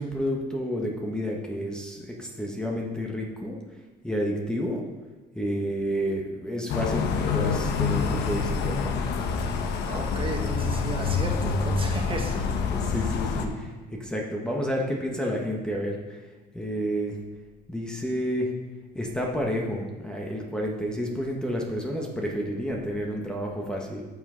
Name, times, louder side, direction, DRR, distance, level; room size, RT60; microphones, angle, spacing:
voice 1, 0.0-3.6 4.0-4.9 5.3-8.9 12.7-16.2 16.5-17.2 17.7-18.5 18.9-24.0, equal, 5° left, -1 dB, 1.2 m, -30 dB
sound 1, 6.7-13.5, left 5 dB, 85° left, 1.0 m, -27 dB
voice 2, 9.8-12.4, right 2 dB, 30° right, 1 dB, 1.7 m, -33 dB
14.0 x 5.9 x 3.8 m, 1.3 s
cardioid pair, 110°, 17 cm